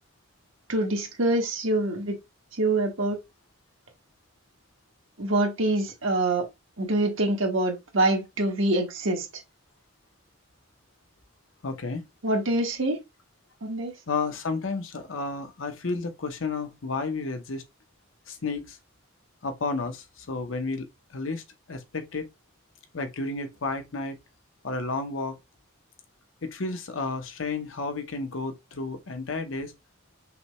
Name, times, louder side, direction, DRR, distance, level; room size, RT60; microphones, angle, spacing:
voice 1, 0.7-2.2 2.6-3.2 5.2-6.4 6.8-9.3 12.2-13.0 13.6-13.9, right 2 dB, 80° right, 1.3 m, -25 dB
voice 2, 11.6-12.0 14.1-17.6 18.3-18.8 19.4-21.4 21.7-22.3 22.9-24.2 24.6-25.4 26.4-29.7, left 3 dB, 80° left, 0.8 m, -32 dB
5.6 x 2.2 x 3.1 m
head